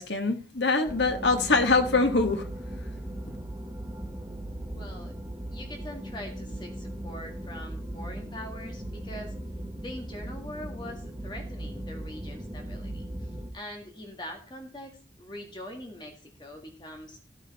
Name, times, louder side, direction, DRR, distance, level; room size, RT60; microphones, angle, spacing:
voice 1, 0.0-2.5, left 3 dB, 70° left, 1.5 m, -24 dB
sound 1, 0.9-13.5, right 1 dB, 15° right, 1.5 m, -38 dB
voice 2, 4.7-5.1 5.5-9.4 9.8-17.2, left 1 dB, 25° left, 1.7 m, -43 dB
14.5 x 9.2 x 4.2 m
head